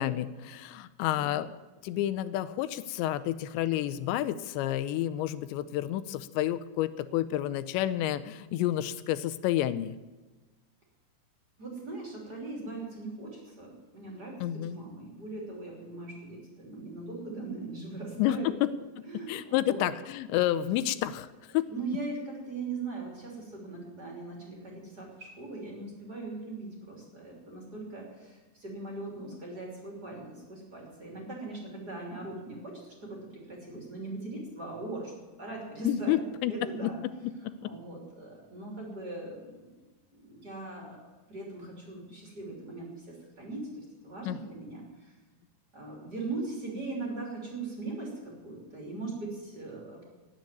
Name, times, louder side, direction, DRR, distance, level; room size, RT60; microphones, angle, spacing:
voice 1, 0.0-1.5 1.8-10.0 14.4-14.8 18.2-18.7 19.3-21.3 21.5-21.6 35.8-36.5 36.8-36.9 37.2-37.7 44.2-44.4, left 13 dB, 85° left, 14 dB, 2.8 m, -30 dB
voice 2, 11.6-18.5 19.0-19.8 21.7-35.1 35.4-36.2 36.5-37.0 37.6-39.7 40.1-41.0 41.3-45.2 45.7-50.0, right 3 dB, 25° right, -1 dB, 2.9 m, -40 dB
18.0 x 7.2 x 9.1 m, 1.2 s
omnidirectional pair, 5.1 m